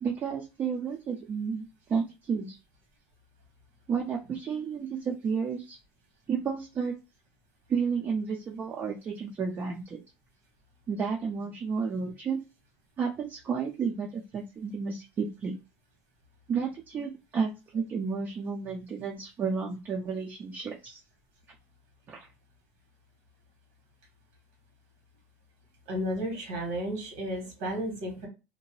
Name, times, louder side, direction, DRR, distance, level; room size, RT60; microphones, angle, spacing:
voice 1, 0.0-2.6 3.9-5.8 6.3-6.9 7.7-10.0 10.9-12.4 13.0-15.5 16.5-21.0 22.1-22.2, right 6 dB, 35° right, -1 dB, 0.5 m, -32 dB
voice 2, 25.9-28.3, equal, 85° right, 0 dB, 1.6 m, -33 dB
2.8 x 2.1 x 3.0 m, 0.28 s
supercardioid pair, 120°, 6 cm